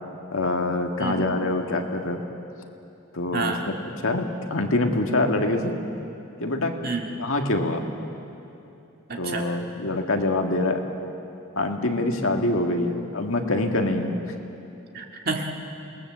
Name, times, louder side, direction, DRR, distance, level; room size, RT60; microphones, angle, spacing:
voice 1, 0.3-2.2 3.1-3.7 4.0-5.7 6.4-6.7 7.2-7.8 9.2-10.8 11.6-14.2, left 2 dB, 70° left, 4 dB, 1.9 m, -25 dB
voice 2, 3.3-3.7 6.8-7.2 9.1-9.5 14.9-15.7, right 3 dB, 45° right, 2 dB, 1.9 m, -29 dB
27.5 x 19.5 x 7.4 m, 2.8 s
head